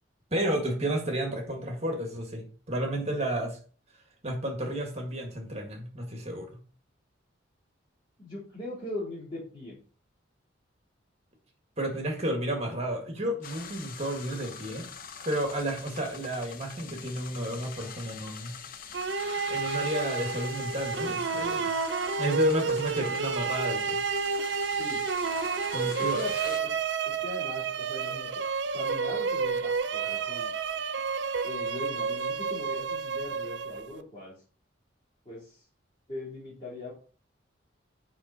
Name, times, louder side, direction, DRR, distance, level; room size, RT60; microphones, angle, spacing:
voice 1, 0.3-3.6 4.2-6.5 11.8-14.9 15.2-18.5 19.5-21.7 22.2-24.0 25.7-26.2, right 1 dB, 35° right, 2 dB, 1.9 m, -31 dB
voice 2, 8.2-9.8 24.7-25.0 25.8-26.8 27.0-28.4 28.7-30.5 31.4-34.3 35.2-35.6 36.1-36.9, left 2 dB, 25° left, -10 dB, 3.5 m, -40 dB
sound 1, 13.4-26.6, left 6 dB, 45° left, 0.7 m, -44 dB
sound 2, 18.9-34.0, right 5 dB, 60° right, 0.5 m, -30 dB
8.7 x 5.2 x 4.2 m, 0.40 s
head